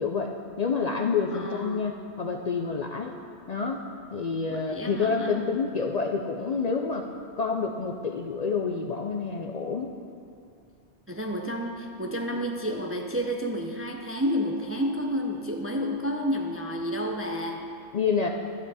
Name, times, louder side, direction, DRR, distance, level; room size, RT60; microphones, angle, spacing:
voice 1, 0.0-3.1 3.5-3.8 4.1-7.1 7.4-9.9 17.9-18.3, left 5 dB, 50° left, 2 dB, 0.5 m, -28 dB
voice 2, 1.3-1.9 4.5-5.4 11.1-17.7, equal, 20° right, 2 dB, 0.4 m, -30 dB
12.0 x 9.0 x 4.1 m, 2.4 s
omnidirectional pair, 1.2 m